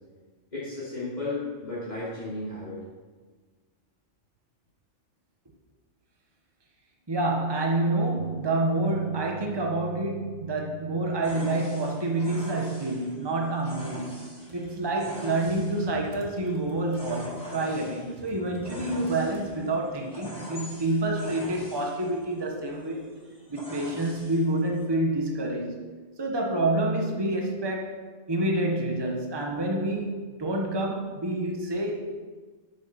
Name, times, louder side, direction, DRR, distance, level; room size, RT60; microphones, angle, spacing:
voice 1, 0.5-2.8, left 2 dB, 35° left, -9 dB, 3.2 m, -34 dB
voice 2, 7.1-23.1 23.5-25.9 26.2-28.0 28.3-32.0, right 2 dB, 20° right, 0 dB, 1.2 m, -28 dB
sound 1, 8.2-12.4, right 7 dB, 65° right, 1.3 m, -45 dB
sound 2, 11.2-24.8, equal, 5° left, 3.4 m, -44 dB
Computer keyboard, 14.3-19.9, right 1 dB, 80° right, 1.8 m, -50 dB
9.4 x 9.1 x 5.8 m, 1.4 s
omnidirectional pair, 1.2 m